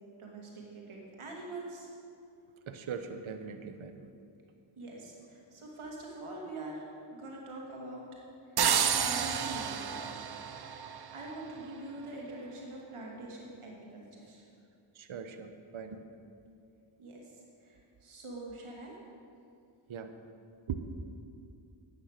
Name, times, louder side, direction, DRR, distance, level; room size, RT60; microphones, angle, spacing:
voice 1, 0.2-1.9 4.8-6.8 7.1-8.0 8.5-8.6 8.9-10.6 11.1-14.4 17.0-17.3 17.6-19.0, right 2 dB, 90° right, -2 dB, 2.5 m, -44 dB
voice 2, 2.7-4.1 14.9-16.1 19.9-20.1 20.7-20.8, right 7 dB, 75° right, 8 dB, 1.0 m, -40 dB
sound 1, 8.6-11.4, right 7 dB, 50° right, 0.8 m, -30 dB
11.0 x 9.2 x 6.6 m, 2.4 s
cardioid pair, 50°, 49 cm